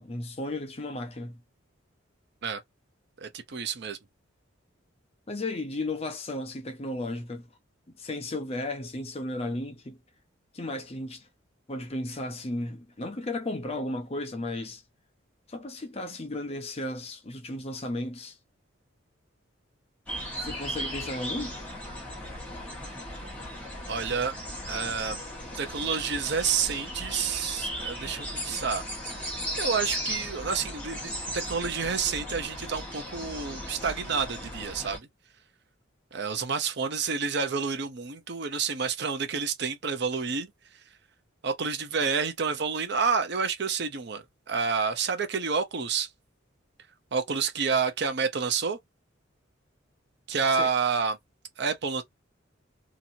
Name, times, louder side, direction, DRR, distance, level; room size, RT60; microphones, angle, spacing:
voice 1, 0.0-1.4 5.3-7.5 8.0-10.0 10.5-11.3 11.7-14.8 15.5-18.4 20.4-21.6 50.5-50.7, left 2 dB, 30° left, 0.6 m, -34 dB
voice 2, 3.2-4.0 23.9-24.3 24.7-25.2 25.5-28.8 29.2-35.1 36.1-40.5 41.4-46.1 47.1-48.8 50.3-51.2 51.6-52.0, right 5 dB, 55° right, 0.6 m, -29 dB
sound 1, 20.1-35.0, equal, 10° left, 1.3 m, -36 dB
2.9 x 2.7 x 2.6 m
head